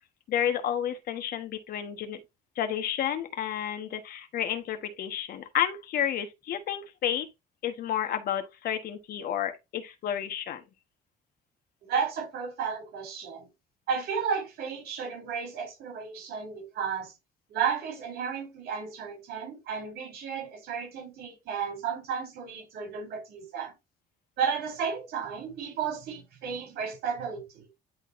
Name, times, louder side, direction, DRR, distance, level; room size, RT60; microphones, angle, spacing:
voice 1, 0.3-2.2 2.6-7.3 7.6-10.6, left 10 dB, 65° left, 1.4 m, -31 dB
voice 2, 11.8-13.5 13.9-17.1 17.5-23.7 24.4-27.7, right 6 dB, 70° right, 3.5 m, -33 dB
11.0 x 3.9 x 2.6 m
cardioid pair, 110°, 17 cm